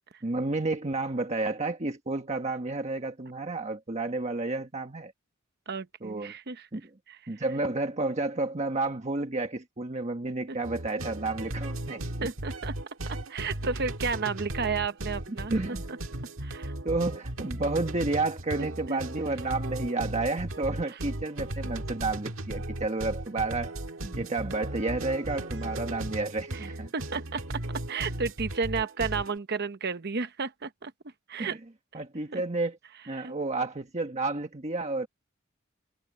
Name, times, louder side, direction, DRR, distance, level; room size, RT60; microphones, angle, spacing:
voice 1, 0.2-5.1 6.0-6.3 6.7-6.9 7.3-12.3 15.5-15.9 16.8-23.7 24.0-26.9 31.4-31.6 31.9-32.8 33.1-35.1, right 2 dB, 35° right, 1.4 m, -31 dB
voice 2, 5.7-6.7 7.1-7.2 10.5-10.6 12.2-12.8 13.1-15.5 16.4-16.7 18.9-19.0 26.5-26.7 26.9-27.6 27.9-30.9 31.3-31.6 32.3-32.4 33.2-33.3, right 5 dB, 55° right, 0.9 m, -32 dB
sound 1, 10.6-29.3, right 1 dB, 70° right, 1.7 m, -36 dB
head